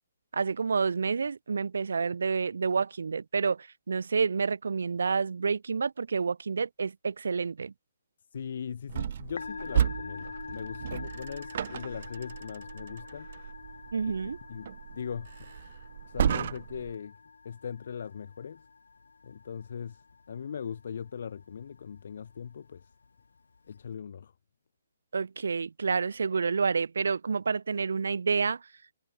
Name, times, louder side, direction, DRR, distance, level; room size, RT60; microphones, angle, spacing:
voice 1, 0.3-7.7 13.9-14.4 25.1-28.6, right 5 dB, 80° right, 0.7 m, -29 dB
voice 2, 8.3-13.3 14.2-15.5 16.1-17.2 17.4-18.6 19.2-20.0 20.3-22.9 23.7-24.3, left 7 dB, 60° left, 2.8 m, -40 dB
sound 1, 8.9-16.9, right 9 dB, 50° right, 0.9 m, -34 dB
Musical instrument, 9.2-23.9, left 4 dB, 85° left, 4.0 m, -47 dB
hypercardioid pair, 155°, 0 cm